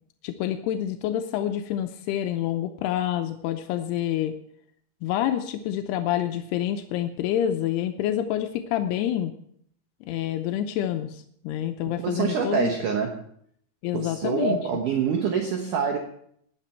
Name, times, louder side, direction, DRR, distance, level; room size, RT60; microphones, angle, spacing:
voice 1, 0.2-4.3 5.0-9.3 10.0-12.7 13.8-14.6, left 11 dB, 90° left, 6 dB, 2.8 m, -27 dB
voice 2, 11.9-13.2 13.9-16.0, right 6 dB, 65° right, 2 dB, 2.4 m, -26 dB
16.5 x 10.5 x 4.4 m, 0.66 s
omnidirectional pair, 4.6 m